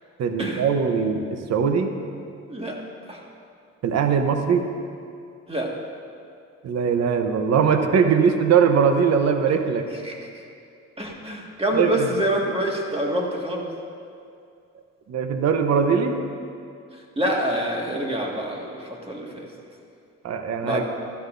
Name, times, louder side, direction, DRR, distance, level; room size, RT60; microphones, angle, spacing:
voice 1, 0.2-1.9 3.8-4.7 6.6-9.9 11.7-12.1 15.1-16.2 20.2-20.8, right 6 dB, 60° right, 6 dB, 0.9 m, -21 dB
voice 2, 11.0-13.7 17.2-19.5 20.6-20.8, right 1 dB, 20° right, -1 dB, 1.8 m, -26 dB
14.5 x 12.5 x 2.6 m, 2.5 s
cardioid pair, 90°, 30 cm